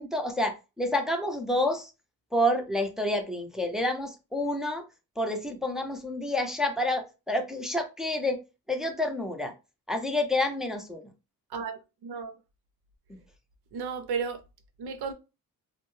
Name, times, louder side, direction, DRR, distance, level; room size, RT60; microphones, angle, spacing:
voice 1, 0.0-1.9 2.3-4.8 5.2-8.4 8.7-9.5 9.9-11.0 13.1-13.2, left 1 dB, ahead, 0.3 m, -29 dB
voice 2, 11.5-12.3 13.7-14.4 14.8-15.1, right 6 dB, 90° right, 0.6 m, -33 dB
2.6 x 2.1 x 3.0 m
wide cardioid pair, 125°, 37 cm